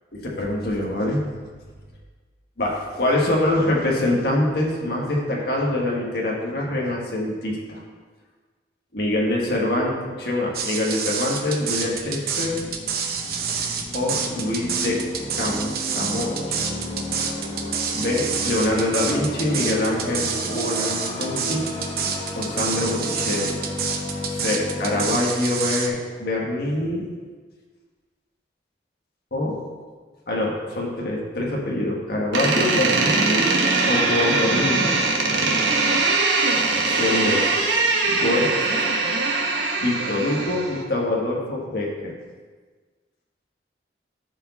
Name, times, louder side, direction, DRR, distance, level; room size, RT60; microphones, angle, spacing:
voice 1, 0.2-1.3 2.6-7.8 8.9-12.6 13.9-15.0 15.3-16.6 17.9-21.6 22.4-23.6 24.3-27.1 29.3-29.6 30.3-33.5 33.8-34.9 35.2-35.7 36.8-37.5 38.0-38.5 39.8-42.1, left 1 dB, 55° left, -3 dB, 1.6 m, -25 dB
sound 1, 10.5-25.9, right 6 dB, 55° right, 0.9 m, -28 dB
sound 2, 11.3-25.2, left 1 dB, 25° left, 1.2 m, -33 dB
Door, 32.3-40.8, right 3 dB, 75° right, 1.3 m, -21 dB
13.5 x 4.9 x 4.1 m, 1.5 s
head